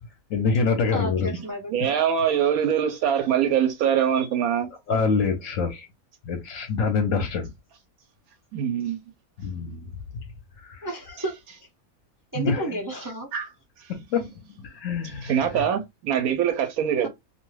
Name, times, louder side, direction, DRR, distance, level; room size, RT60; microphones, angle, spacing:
voice 1, 0.3-1.3 4.9-5.9 6.3-7.5 9.4-9.9 10.6-10.9 12.4-12.7 14.1-14.3 14.6-15.6, left 5 dB, 65° left, 1.0 m, -25 dB
voice 2, 0.9-1.8 10.8-11.4 12.3-13.3, right 1 dB, 35° right, 0.3 m, -32 dB
voice 3, 1.7-4.7 8.5-9.0 12.4-12.5 13.3-13.5 15.2-17.1, right 8 dB, 80° right, 1.0 m, -23 dB
2.6 x 2.2 x 3.1 m
omnidirectional pair, 1.5 m